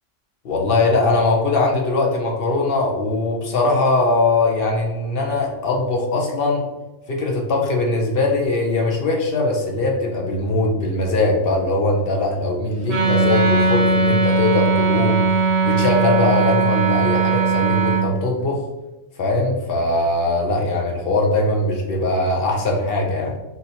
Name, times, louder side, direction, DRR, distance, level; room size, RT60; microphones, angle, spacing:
voice 1, 0.4-6.6 7.1-15.2 15.6-18.6 19.2-23.4, left 2 dB, 55° left, 0 dB, 0.7 m, -20 dB
Wind instrument woodwind instrument, 12.9-18.1, right 4 dB, 65° right, 0.9 m, -19 dB
3.9 x 2.6 x 2.7 m, 1.0 s
omnidirectional pair, 1.3 m